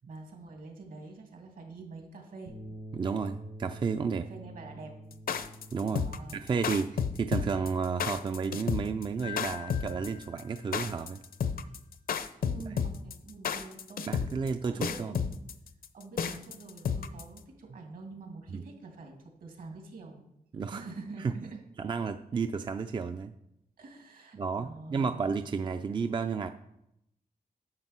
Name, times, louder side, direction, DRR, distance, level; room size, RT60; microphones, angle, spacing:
voice 1, 0.1-2.6 4.1-5.0 5.9-6.7 12.4-14.2 14.6-15.3 15.9-20.2 20.7-21.6 23.8-25.2, right 3 dB, 70° right, 2 dB, 2.5 m, -46 dB
sound 1, 2.5-10.9, right 1 dB, 85° right, 3.9 m, -49 dB
voice 2, 2.9-4.2 5.7-6.1 6.3-11.2 14.1-15.1 18.5-18.6 20.5-20.8 21.2-21.3 21.8-23.3 24.4-26.5, right 5 dB, 30° right, 9 dB, 0.4 m, -32 dB
sound 2, 5.1-17.4, left 7 dB, 70° left, 0.6 m, -32 dB
Keyboard (musical), 9.2-11.0, left 14 dB, 90° left, 1.1 m, -45 dB
9.6 x 7.2 x 5.9 m, 0.81 s
wide cardioid pair, 160°, 15 cm